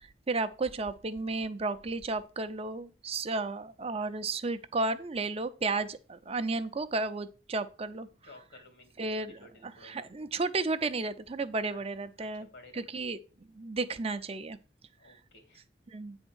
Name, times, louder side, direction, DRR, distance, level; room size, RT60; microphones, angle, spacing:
voice 1, 0.3-8.1 9.0-12.5 12.7-13.2 13.5-14.6 15.9-16.2, right 3 dB, 35° right, 0.6 m, -33 dB
voice 2, 8.2-10.1 11.7-11.8 12.2-13.1 15.0-15.7, left 2 dB, 80° left, 2.2 m, -55 dB
8.9 x 3.6 x 6.2 m
head